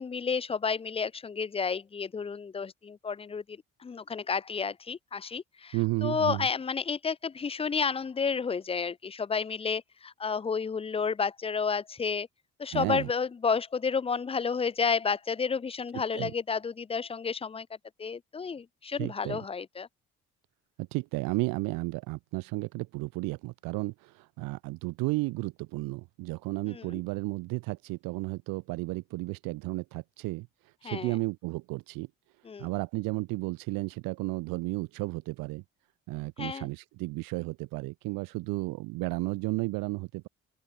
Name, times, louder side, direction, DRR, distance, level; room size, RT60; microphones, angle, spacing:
voice 1, 0.0-5.8 6.0-12.3 12.6-17.7 18.0-19.9 26.7-27.0 30.8-31.2 32.4-32.7 36.4-36.7, left 5 dB, 15° left, 0.4 m, -31 dB
voice 2, 5.7-6.5 12.7-13.1 15.9-16.3 19.0-19.4 20.8-32.1 32.4-35.6 36.1-40.3, right 23 dB, 65° right, 0.5 m, -33 dB
open air
hypercardioid pair, 45°, 37 cm